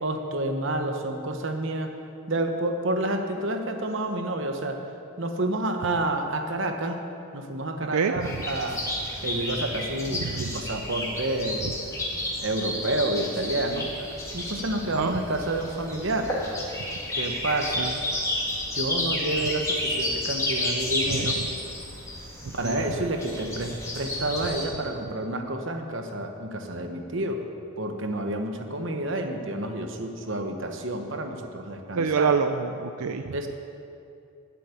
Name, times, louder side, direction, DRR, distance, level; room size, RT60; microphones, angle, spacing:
voice 1, 0.0-1.9 2.3-4.8 5.2-7.0 7.3-8.9 9.2-11.6 12.4-13.9 14.3-16.3 17.2-17.9 18.7-21.4 22.5-27.4 27.8-32.3 33.3-33.5, right 1 dB, 55° right, 5 dB, 1.1 m, -29 dB
voice 2, 7.9-8.3 10.1-10.6 11.6-11.7 15.0-15.1 17.8-18.0 21.1-21.3 22.4-22.8 31.9-33.3, right 5 dB, 85° right, 7 dB, 0.5 m, -27 dB
sound 1, 8.2-24.6, left 1 dB, 15° left, 1.9 m, -31 dB
12.0 x 7.6 x 8.5 m, 2.6 s
head